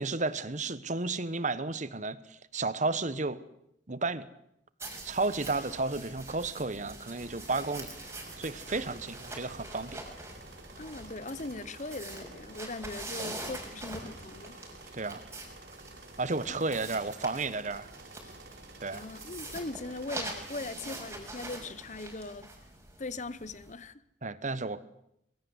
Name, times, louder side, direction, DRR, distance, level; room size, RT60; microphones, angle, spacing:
voice 1, 0.0-3.4 3.9-4.2 5.0-7.9 8.4-10.0 13.2-13.3 14.9-15.2 16.2-17.9 18.8-19.0 24.2-24.8, right 3 dB, 40° right, 1.2 m, -32 dB
sound 1, 4.8-23.7, right 2 dB, 15° right, 6.1 m, -44 dB
sound 2, 7.1-21.0, right 2 dB, 60° right, 3.9 m, -51 dB
voice 2, 10.8-14.6 16.5-16.6 18.9-22.5 23.0-24.0, left 2 dB, 40° left, 1.0 m, -40 dB
25.0 x 22.5 x 8.1 m
head